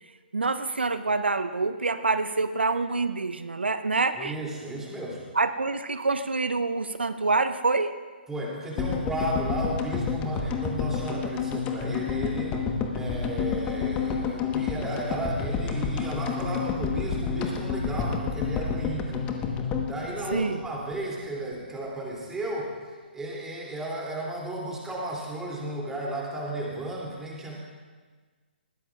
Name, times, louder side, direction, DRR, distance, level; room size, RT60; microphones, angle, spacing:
voice 1, 0.3-4.4 5.3-7.9 20.3-20.6, right 3 dB, 80° right, 11 dB, 0.6 m, -26 dB
voice 2, 4.2-5.2 8.3-12.6 12.9-19.3 19.8-22.7 23.1-27.6, right 1 dB, 10° right, -3 dB, 2.9 m, -34 dB
sound 1, 8.8-21.0 21.3-21.4 21.5-21.6, left 5 dB, 20° left, 1.2 m, -29 dB
20.5 x 15.5 x 2.5 m, 1.4 s
figure-of-eight pair, 130°, 6 cm